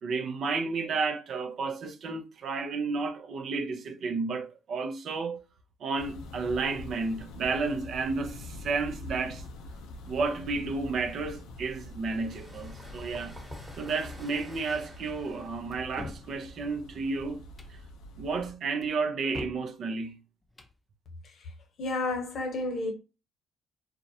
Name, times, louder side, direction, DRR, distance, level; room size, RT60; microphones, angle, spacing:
voice 1, 0.0-5.4 5.8-9.4 10.1-13.4 13.8-17.4 18.2-20.2, right 4 dB, 65° right, 0.4 m, -32 dB
sound 1, 6.0-18.6, left 2 dB, 85° left, 0.4 m, -45 dB
sound 2, 12.0-17.5, equal, 10° right, 1.0 m, -50 dB
sound 3, 15.7-16.3 17.4-17.8 18.8-19.7 20.4-20.8, left 2 dB, 20° left, 0.6 m, -43 dB
voice 2, 21.8-22.9, left 2 dB, 60° left, 0.8 m, -31 dB
2.3 x 2.1 x 2.6 m
supercardioid pair, 60°, 0 cm